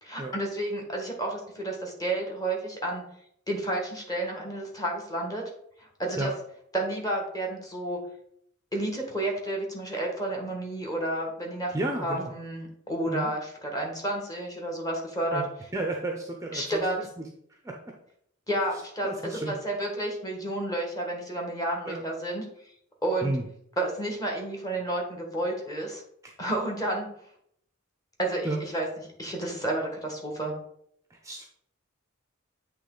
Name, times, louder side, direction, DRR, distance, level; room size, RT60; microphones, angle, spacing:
voice 1, 0.0-3.0 3.5-5.4 5.8-6.3 6.7-8.0 8.7-11.7 12.0-15.4 16.5-17.0 18.5-22.4 23.0-23.3 23.8-26.0 26.4-27.1 28.2-28.9 29.2-30.5, right 1 dB, 15° left, 1 dB, 1.3 m, -31 dB
voice 2, 11.7-12.3 13.1-13.3 15.3-15.5 15.7-17.2 17.6-17.9 19.0-19.6 21.9-22.0 23.2-23.4 28.4-28.6 31.2-31.4, right 2 dB, 15° right, 2 dB, 0.5 m, -32 dB
8.2 x 3.0 x 3.8 m, 0.70 s
head